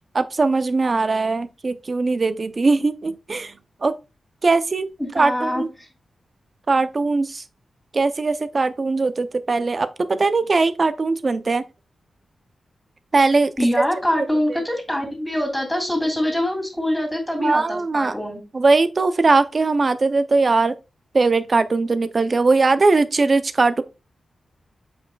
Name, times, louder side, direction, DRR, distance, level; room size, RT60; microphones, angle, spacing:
voice 1, 0.1-3.9 4.4-4.9 5.1-5.7 6.7-7.4 7.9-11.6 13.1-13.5 14.2-14.6 17.4-18.1 18.5-20.8 21.1-23.8, right 3 dB, 40° right, 0.6 m, -20 dB
voice 2, 5.0-5.6 13.6-18.4, left 1 dB, 10° left, 2.9 m, -24 dB
7.6 x 5.5 x 2.3 m
wide cardioid pair, 110°, 0 cm